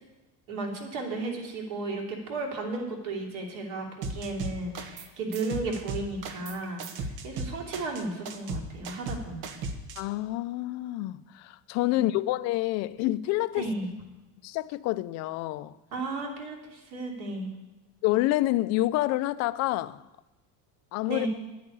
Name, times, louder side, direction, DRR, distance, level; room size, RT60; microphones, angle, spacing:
voice 1, 0.5-9.5 11.9-12.0 13.5-13.9 15.9-17.5 21.1-21.3, right 2 dB, 60° right, 2.9 m, -34 dB
sound 1, 4.0-5.1 5.3-10.0, right 3 dB, 80° right, 1.5 m, -36 dB
voice 2, 10.0-13.7 14.4-15.8 18.0-20.0 20.9-21.3, left 16 dB, 45° left, 0.4 m, -28 dB
10.5 x 8.6 x 9.8 m
cardioid pair, 180°, 37 cm